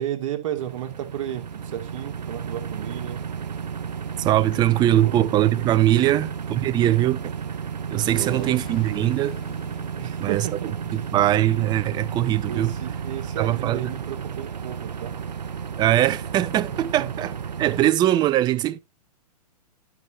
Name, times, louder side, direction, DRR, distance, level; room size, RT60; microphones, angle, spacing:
voice 1, 0.0-3.2 4.7-5.2 6.0-6.3 8.1-8.5 10.0-11.1 12.5-15.2 16.7-16.8, right 11 dB, 50° right, 2.2 m, -33 dB
sound 1, 0.5-17.9, right 7 dB, 85° right, 0.5 m, -33 dB
voice 2, 4.2-7.3 7.9-9.4 10.2-10.5 10.9-12.7 13.4-13.9 15.8-17.3 17.6-18.8, right 13 dB, 20° right, 0.6 m, -21 dB
Explosion, 8.0-10.9, left 12 dB, 25° left, 0.9 m, -45 dB
12.0 x 6.3 x 2.8 m
figure-of-eight pair, 115°, 21 cm